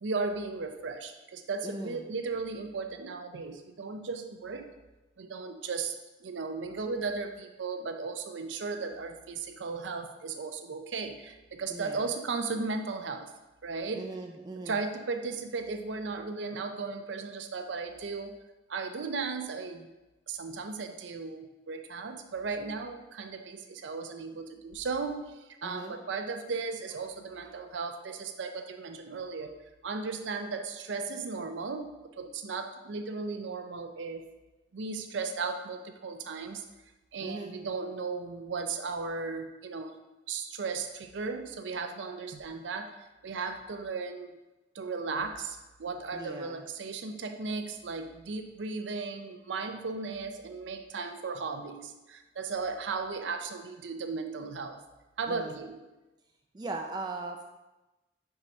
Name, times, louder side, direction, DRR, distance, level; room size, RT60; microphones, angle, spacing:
voice 1, 0.0-4.7 5.2-5.9 6.2-13.3 13.6-14.1 14.7-18.4 18.7-19.9 20.3-29.5 29.8-31.9 32.2-34.3 34.7-36.6 37.1-40.0 40.3-44.3 44.7-54.8 55.2-55.8, right 4 dB, 90° right, 6 dB, 0.5 m, -36 dB
voice 2, 1.6-2.0 11.7-12.1 13.9-14.8 25.6-25.9 37.2-37.5 46.1-46.6 55.3-55.6 56.5-57.4, right 2 dB, 25° right, 3 dB, 0.4 m, -39 dB
5.3 x 4.8 x 5.2 m, 1.1 s
head